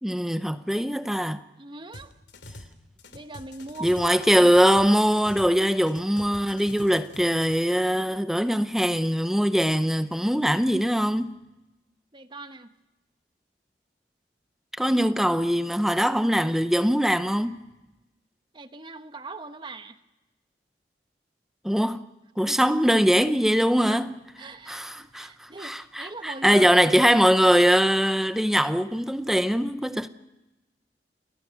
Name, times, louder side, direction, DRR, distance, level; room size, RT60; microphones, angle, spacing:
voice 1, 0.0-1.4 3.8-11.4 14.8-17.6 21.6-22.0 22.4-24.1 24.7-30.1, equal, ahead, 0.7 m, -22 dB
voice 2, 1.6-2.1 3.1-4.5 12.1-12.7 14.8-15.0 18.5-20.0 22.4-22.6 23.8-24.0 24.4-26.7, right 2 dB, 25° right, 1.1 m, -41 dB
sound 1, 1.9-2.7 3.0-5.6 5.8-7.5, left 2 dB, 80° left, 2.6 m, -45 dB
29.0 x 19.5 x 5.9 m
head